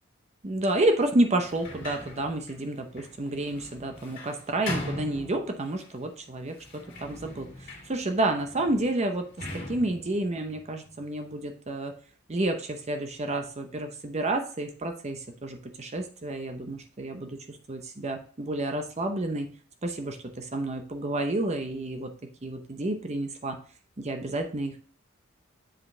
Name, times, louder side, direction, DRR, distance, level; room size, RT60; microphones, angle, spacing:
voice 1, 0.4-11.9 12.3-19.5 19.8-22.1 22.4-23.6 24.0-24.8, right 2 dB, 30° right, 5 dB, 0.7 m, -30 dB
Sliding door, 1.4-5.9 6.5-11.4, left 2 dB, 45° left, 2.2 m, -41 dB
7.5 x 5.1 x 3.2 m, 0.42 s
head